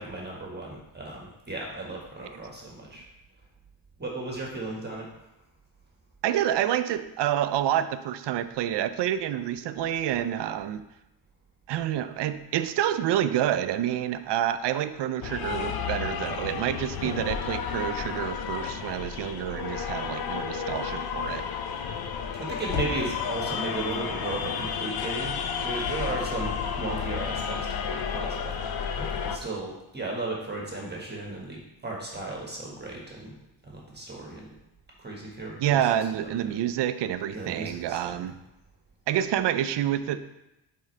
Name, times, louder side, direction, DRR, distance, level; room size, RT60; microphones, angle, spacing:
voice 1, 0.0-3.0 4.0-5.1 17.0-17.2 22.4-28.5 29.0-33.3 33.6-34.5 35.0-35.8 37.3-38.1, right 2 dB, 20° right, -2 dB, 1.4 m, -35 dB
voice 2, 6.2-10.8 11.7-21.4 35.6-38.3 39.1-40.2, right 11 dB, 65° right, 12 dB, 0.5 m, -28 dB
sound 1, 15.2-29.4, left 7 dB, 55° left, 0.6 m, -32 dB
8.6 x 3.9 x 3.2 m, 0.92 s
cardioid pair, 110°, 46 cm